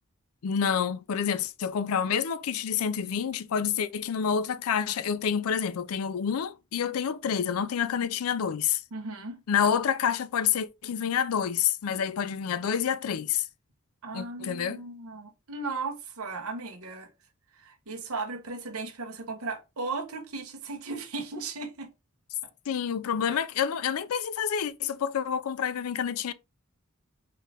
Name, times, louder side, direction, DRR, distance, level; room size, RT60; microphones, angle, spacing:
voice 1, 0.4-8.8 9.5-13.5 14.1-14.8 22.7-26.3, left 7 dB, 80° left, 0.4 m, -28 dB
voice 2, 8.9-9.4 14.0-17.1 17.5-21.9 23.3-23.4, right 3 dB, 75° right, 1.0 m, -36 dB
4.5 x 2.5 x 3.3 m
head